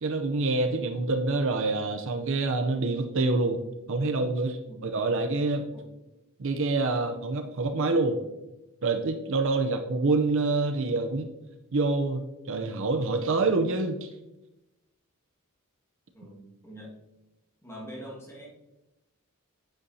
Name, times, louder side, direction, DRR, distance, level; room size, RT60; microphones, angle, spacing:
voice 1, 0.0-3.6 3.9-5.7 6.4-8.2 8.8-11.3 11.7-14.1, right 3 dB, 60° right, 6 dB, 0.6 m, -26 dB
voice 2, 16.1-17.0 17.6-18.5, equal, 10° left, -3 dB, 1.7 m, -44 dB
8.2 x 8.2 x 2.7 m, 0.98 s
head